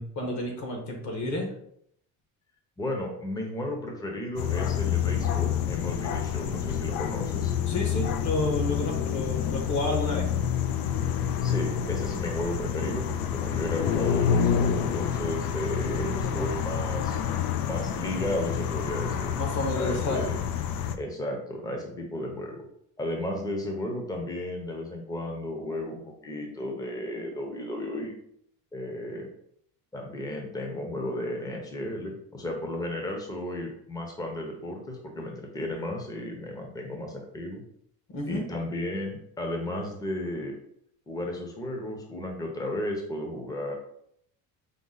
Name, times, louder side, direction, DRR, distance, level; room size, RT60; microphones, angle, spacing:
voice 1, 0.0-1.5 7.7-10.3 15.8-16.6 19.4-20.3 38.1-38.4, left 1 dB, 50° left, 1 dB, 1.3 m, -31 dB
voice 2, 2.8-7.5 11.4-17.2 17.6-19.3 19.8-20.3 20.9-22.6 23.0-28.1 28.7-29.3 29.9-37.6 38.3-40.5 41.1-43.7, left 1 dB, 10° left, 1 dB, 0.7 m, -34 dB
sound 1, 4.4-21.0, left 8 dB, 75° left, 0.5 m, -28 dB
5.2 x 2.2 x 3.9 m, 0.71 s
cardioid pair, 145°, 35 cm